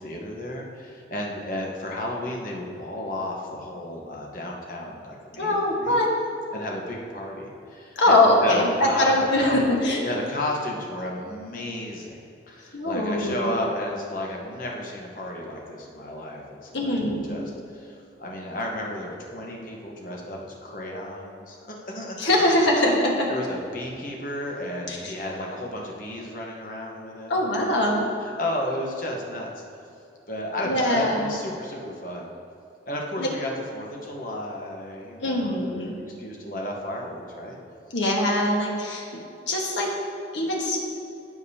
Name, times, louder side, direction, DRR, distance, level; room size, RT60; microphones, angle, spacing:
voice 1, 0.0-6.0 6.5-9.5 10.0-12.2 12.5-17.0 17.3-22.2 23.3-27.8 28.2-29.5 30.3-32.3 32.9-37.6, left 1 dB, 45° left, -1 dB, 1.1 m, -33 dB
voice 2, 5.4-6.1 8.0-10.0 12.7-13.5 16.7-17.4 22.2-23.3 24.9-25.1 27.3-28.0 30.6-31.3 33.2-33.3 35.2-35.9 37.9-39.0 39.5-39.9 40.3-40.8, left 1 dB, 75° left, -2 dB, 1.4 m, -22 dB
14.5 x 5.2 x 2.8 m, 2.7 s
head